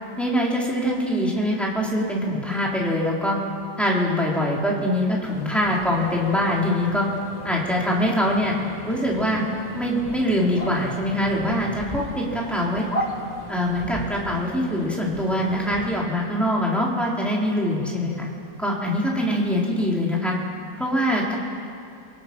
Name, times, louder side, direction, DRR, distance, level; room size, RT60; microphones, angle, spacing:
voice 1, 0.2-3.4 3.8-7.1 7.4-8.6 8.9-9.4 9.8-12.8 13.5-18.3 18.6-20.3 20.8-21.4, equal, ahead, -4 dB, 3.6 m, -23 dB
sound 1, 5.2-16.0, left 1 dB, 25° left, 1.6 m, -36 dB
26.5 x 24.0 x 6.1 m, 2.6 s
omnidirectional pair, 2.0 m